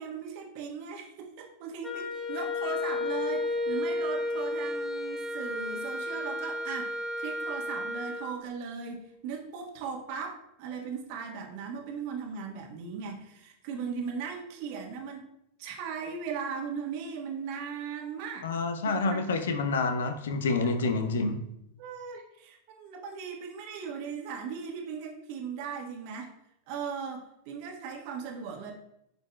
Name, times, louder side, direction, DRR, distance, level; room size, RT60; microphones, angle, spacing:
voice 1, 0.0-15.3 15.6-18.5 18.9-19.3 21.8-26.3 26.7-28.7, right 6 dB, 50° right, 2 dB, 1.4 m, -38 dB
Wind instrument woodwind instrument, 1.8-8.3, left 2 dB, 15° left, 1.2 m, -32 dB
voice 2, 18.4-21.4, left 3 dB, 65° left, 7 dB, 0.8 m, -28 dB
10.5 x 5.2 x 2.3 m, 0.79 s
figure-of-eight pair, 90°, 0 cm